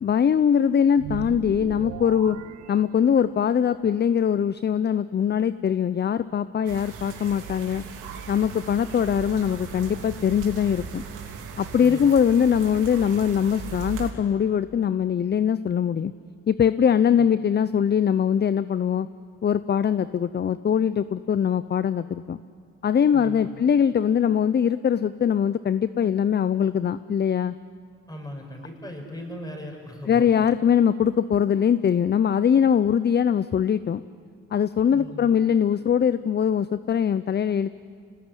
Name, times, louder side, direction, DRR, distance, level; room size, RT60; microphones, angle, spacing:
voice 1, 0.0-2.4 2.7-7.8 8.3-11.0 11.6-16.1 16.5-19.1 19.4-22.4 22.8-27.5 30.1-34.0 34.5-37.7, left 8 dB, 35° left, 15 dB, 0.6 m, -22 dB
sound 1, 1.0-3.5, right 10 dB, 60° right, 0.8 m, -38 dB
sound 2, 6.7-14.1, right 6 dB, 85° right, 3.3 m, -38 dB
voice 2, 11.8-12.1 23.1-23.7 28.1-30.4 34.9-35.3, equal, 15° left, 2 dB, 6.2 m, -38 dB
27.0 x 19.5 x 9.8 m, 2.3 s
cardioid pair, 90°, 30 cm